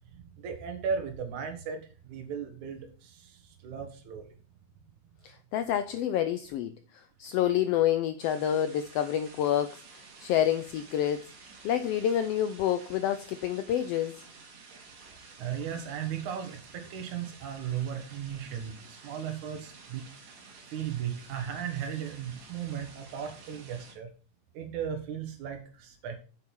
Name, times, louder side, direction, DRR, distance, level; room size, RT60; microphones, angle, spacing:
voice 1, 0.1-4.3 15.4-20.1 20.7-24.1 24.5-26.2, right 8 dB, 85° right, 2.8 m, -36 dB
voice 2, 5.2-11.3 11.6-14.2, left 10 dB, 80° left, 1.4 m, -28 dB
sound 1, 8.2-23.9, right 4 dB, 65° right, 3.1 m, -51 dB
8.3 x 7.5 x 4.6 m
omnidirectional pair, 3.3 m